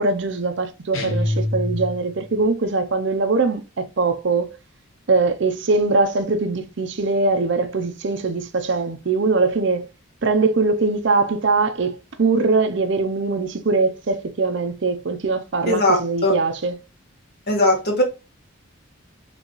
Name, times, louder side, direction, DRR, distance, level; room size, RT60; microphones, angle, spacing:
voice 1, 0.0-4.5 5.1-9.9 10.2-16.8, right 3 dB, 60° right, 0.6 m, -21 dB
sound 1, 0.9-2.3, left 1 dB, 80° left, 1.0 m, -25 dB
voice 2, 15.7-16.4 17.5-18.0, left 1 dB, 50° left, 1.7 m, -19 dB
4.0 x 3.4 x 3.1 m
head